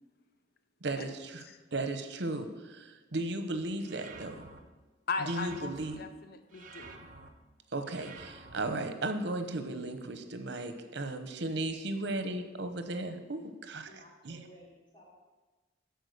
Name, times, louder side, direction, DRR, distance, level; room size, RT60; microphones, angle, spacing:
voice 1, 0.8-1.4 1.7-4.4 5.3-6.0 7.7-14.4, right 2 dB, 65° right, 8 dB, 1.0 m, -35 dB
sound 1, 3.8-4.6 5.2-5.9 6.5-7.3 7.9-8.6, right 4 dB, 45° right, 1.0 m, -50 dB
voice 2, 5.1-7.1, left 4 dB, 55° left, 8 dB, 0.7 m, -38 dB
voice 3, 13.9-15.1, equal, 25° left, -5 dB, 3.2 m, -56 dB
13.0 x 4.7 x 6.7 m, 1.2 s
head